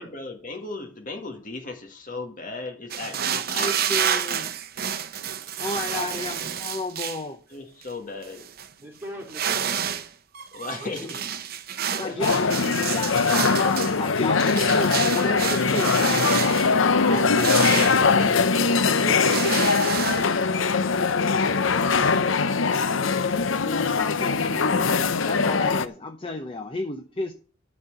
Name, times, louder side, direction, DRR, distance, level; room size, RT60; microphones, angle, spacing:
voice 1, 0.0-4.3 7.5-8.5 10.5-11.2 11.9-12.2 19.1-19.4, left 3 dB, 40° left, 4 dB, 1.9 m, -36 dB
sound 1, 2.9-7.2 7.8-7.9 8.2-8.7 9.2-10.1 10.3-16.7 17.1-18.7 19.0-20.3, right 8 dB, 50° right, 0.8 m, -29 dB
voice 2, 3.5-4.5 5.6-7.4 12.0-18.3 23.6-27.4, left 2 dB, 25° left, 5 dB, 0.8 m, -32 dB
voice 3, 8.8-9.8 10.8-11.2 11.9-12.5 18.8-23.2 24.1-24.4, right 1 dB, 10° right, -2 dB, 2.8 m, -41 dB
sound 2, 12.2-25.9, left 4 dB, 75° left, 0.7 m, -22 dB
12.5 x 4.4 x 8.0 m, 0.40 s
head